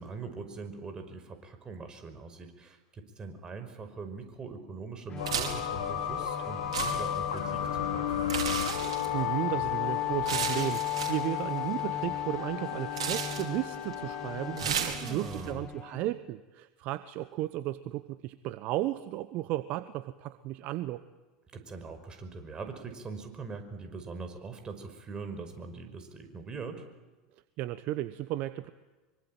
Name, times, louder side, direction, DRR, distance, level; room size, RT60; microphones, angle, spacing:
voice 1, 0.0-8.3 14.6-15.7 21.5-26.8, right 4 dB, 25° right, 7 dB, 5.4 m, -42 dB
Bowed string instrument, 5.1-16.3, left 5 dB, 25° left, 1.5 m, -43 dB
sound 1, 5.2-14.9, left 11 dB, 80° left, 2.9 m, -33 dB
sound 2, 5.2-15.5, right 8 dB, 75° right, 5.0 m, -37 dB
voice 2, 9.1-21.0 27.6-28.7, right 15 dB, 50° right, 13 dB, 1.1 m, -34 dB
25.0 x 24.5 x 9.1 m, 1.2 s
hypercardioid pair, 85°, 3 cm